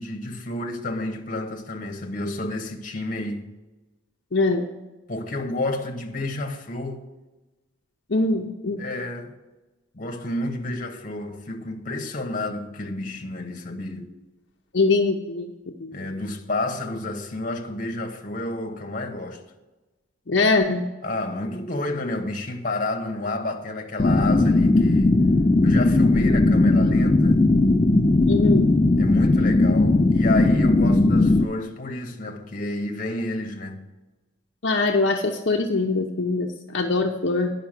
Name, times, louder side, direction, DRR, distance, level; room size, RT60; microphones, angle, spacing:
voice 1, 0.0-3.5 5.1-7.0 8.8-9.4 9.9-14.1 15.9-19.4 21.0-25.2 25.6-27.4 29.0-33.9, left 2 dB, 40° left, 1.1 m, -30 dB
voice 2, 4.3-4.7 8.1-8.8 14.7-15.5 15.8-16.0 20.3-20.8 28.3-28.7 34.6-37.5, left 3 dB, 60° left, 0.7 m, -22 dB
sound 1, 24.0-31.4, left 2 dB, 25° left, 0.4 m, -18 dB
10.5 x 5.7 x 7.4 m
head